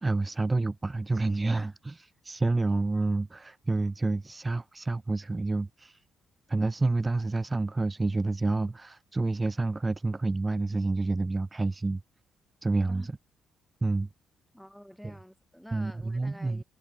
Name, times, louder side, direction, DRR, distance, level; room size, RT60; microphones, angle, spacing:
voice 1, 0.0-1.9 2.2-6.0 6.5-12.0 12.6-13.1 13.8-14.1 15.7-16.6, right 3 dB, 20° right, 1.3 m, -28 dB
voice 2, 14.5-16.6, equal, ahead, 3.0 m, -48 dB
cardioid pair, 90°, 0 cm